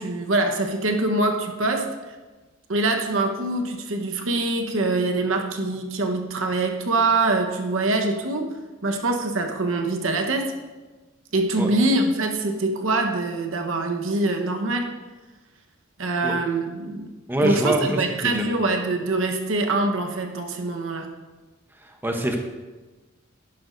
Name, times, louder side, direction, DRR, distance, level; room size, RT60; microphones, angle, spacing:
voice 1, 0.0-1.9 2.7-8.5 8.8-10.5 11.3-14.9 16.0-17.1 17.4-21.1, right 2 dB, 80° right, 4 dB, 1.1 m, -24 dB
voice 2, 17.3-18.0 18.4-18.5 22.0-22.4, right 1 dB, 10° right, 3 dB, 0.8 m, -23 dB
11.0 x 11.0 x 2.6 m, 1.2 s
head